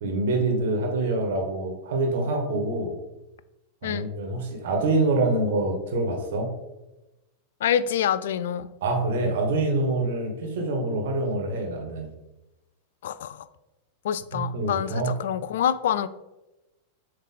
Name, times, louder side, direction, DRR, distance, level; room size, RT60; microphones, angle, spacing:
voice 1, 0.0-2.9 3.8-6.5 8.8-12.1 14.3-15.1, right 2 dB, 55° right, 2 dB, 1.4 m, -26 dB
voice 2, 7.6-8.7 13.0-13.4 14.0-16.1, left 9 dB, 60° left, 15 dB, 0.3 m, -26 dB
7.2 x 3.3 x 4.2 m, 0.99 s
figure-of-eight pair, 90°, 0 cm